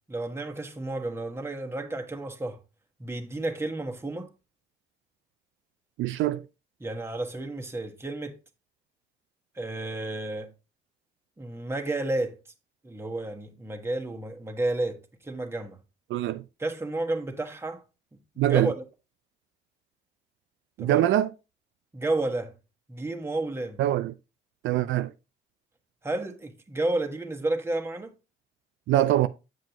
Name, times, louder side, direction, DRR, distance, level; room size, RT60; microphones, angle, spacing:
voice 1, 0.1-2.6 3.0-4.3 6.8-8.4 9.5-10.5 11.4-12.4 12.8-15.8 16.6-17.8 18.3-18.8 20.8-21.1 21.9-22.5 22.9-23.8 26.0-28.1, right 2 dB, 10° right, 1.3 m, -31 dB
voice 2, 6.0-6.4 16.1-16.4 18.4-18.7 20.8-21.3 23.8-24.1 24.6-25.1 28.9-29.3, right 13 dB, 75° right, 0.4 m, -23 dB
7.6 x 7.5 x 2.9 m
cardioid pair, 90°, 20 cm